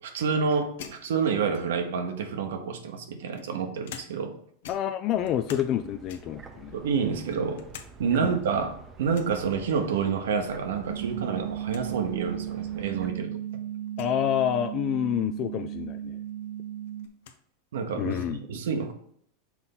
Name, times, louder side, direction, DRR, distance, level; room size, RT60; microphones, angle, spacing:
voice 1, 0.0-4.3 6.7-7.6 8.0-13.3 17.7-18.9, right 6 dB, 90° right, 1.0 m, -28 dB
sound 1, 0.8-2.0 2.8-4.4 4.6-5.8 6.1-6.5 7.0-7.9 8.3-8.4 9.1-9.4 10.8-11.2 11.4-11.5 11.7-11.9 12.7-12.8 13.9-14.2 15.8-15.9 16.3-17.4, left 8 dB, 75° left, 0.7 m, -47 dB
voice 2, 4.7-6.8 8.2-8.4 14.0-16.2 18.0-18.4, left 10 dB, 40° left, 0.3 m, -28 dB
sound 2, 5.1-13.1, right 5 dB, 25° right, 0.7 m, -49 dB
sound 3, 10.9-17.1, right 11 dB, 70° right, 0.5 m, -35 dB
6.0 x 4.1 x 3.8 m
supercardioid pair, 140°, 0 cm